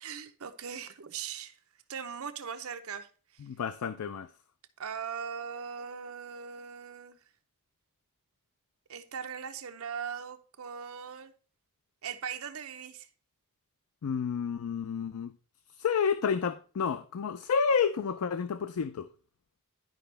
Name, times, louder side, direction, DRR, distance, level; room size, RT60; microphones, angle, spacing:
voice 1, 0.0-1.6 1.9-3.4 4.8-7.2 8.9-11.3 12.0-13.1, right 7 dB, 70° right, 0.7 m, -40 dB
voice 2, 3.4-4.3 14.0-15.3 15.8-19.1, left 6 dB, 90° left, 0.4 m, -30 dB
10.5 x 5.1 x 3.3 m
head